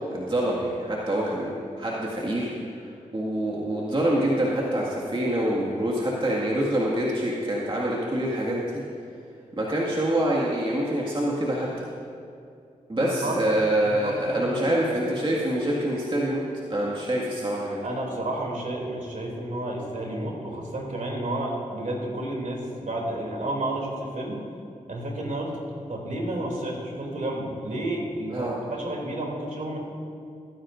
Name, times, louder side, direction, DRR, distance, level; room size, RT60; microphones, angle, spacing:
voice 1, 0.1-2.5 3.1-8.8 9.6-11.9 12.9-16.4 16.7-17.8 28.3-28.6, right 1 dB, 35° right, -5 dB, 1.9 m, -26 dB
voice 2, 13.0-13.4 13.8-14.8 17.8-24.4 24.9-25.6 25.9-29.8, right 1 dB, 60° right, -1 dB, 3.0 m, -31 dB
20.5 x 10.0 x 2.6 m, 2.4 s
cardioid pair, 45°, 15 cm